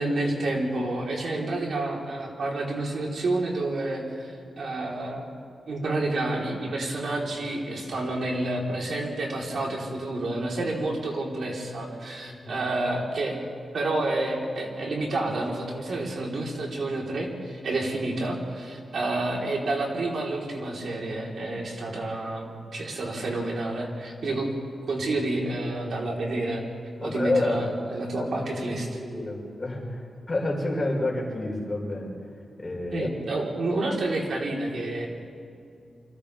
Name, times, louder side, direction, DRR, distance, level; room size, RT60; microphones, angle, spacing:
voice 1, 0.0-5.3 5.7-13.4 13.7-24.5 24.9-26.6 27.0-28.9 32.9-35.1, right 2 dB, 70° right, -2 dB, 4.2 m, -29 dB
voice 2, 12.2-12.6 27.0-27.8 28.1-32.1 32.6-33.1, left 2 dB, 30° left, -2 dB, 5.5 m, -29 dB
29.0 x 25.0 x 3.6 m, 2.4 s
wide cardioid pair, 105°, 0 cm